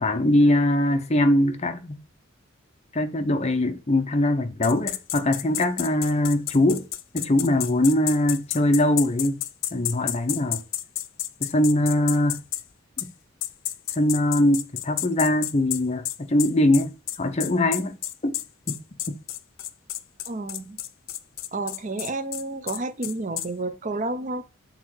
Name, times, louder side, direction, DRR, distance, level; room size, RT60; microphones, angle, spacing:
voice 1, 0.0-2.0 2.9-6.8 7.1-9.4 9.7-10.6 11.4-12.4 13.0-13.1 13.9-16.9 17.2-18.0 18.2-18.4 18.7-18.8 19.1-19.2, left 1 dB, 35° left, 0.7 m, -22 dB
sound 1, 4.6-12.6 13.0-13.1 13.4-23.5, left 14 dB, 75° left, 0.5 m, -31 dB
voice 2, 20.3-20.8 21.5-24.4, right 2 dB, 40° right, 0.6 m, -30 dB
6.3 x 3.8 x 4.7 m
head